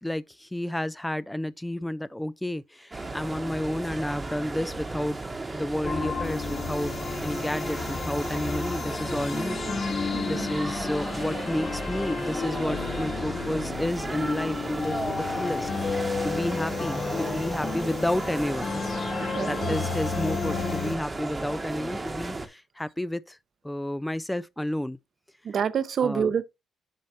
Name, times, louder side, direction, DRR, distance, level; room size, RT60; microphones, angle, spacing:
voice 1, 0.0-9.6 10.3-18.8 19.5-23.4 23.6-25.0 26.0-26.3, left 1 dB, 5° left, 0.3 m, -31 dB
sound 1, 2.9-22.5, right 2 dB, 20° right, 1.0 m, -35 dB
sound 2, 5.8-21.0, left 4 dB, 45° left, 1.6 m, -32 dB
voice 2, 10.1-10.5 19.2-19.8 25.4-26.4, right 7 dB, 55° right, 0.7 m, -27 dB
7.6 x 5.5 x 2.7 m
cardioid pair, 90°, 0 cm